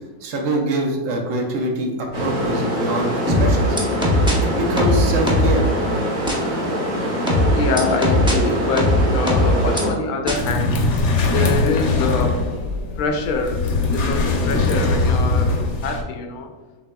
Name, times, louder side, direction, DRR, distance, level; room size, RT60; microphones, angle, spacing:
voice 1, 0.2-3.8 4.4-6.0, right 1 dB, 60° right, 2 dB, 1.1 m, -24 dB
sound 1, 2.1-9.9, equal, 35° right, 1.2 m, -24 dB
sound 2, 3.3-4.3 4.8-5.6 6.3-6.4 7.3-8.3 8.8-9.8 10.3-10.4, left 1 dB, 10° right, 0.3 m, -18 dB
voice 2, 7.5-10.7 11.3-12.4 13.0-13.6 13.9-15.5 15.8-16.5, left 4 dB, 80° left, 5 dB, 1.1 m, -24 dB
sound 3, 10.3-16.0, left 3 dB, 60° left, 0.9 m, -21 dB
6.0 x 3.4 x 2.2 m, 1.2 s
omnidirectional pair, 1.6 m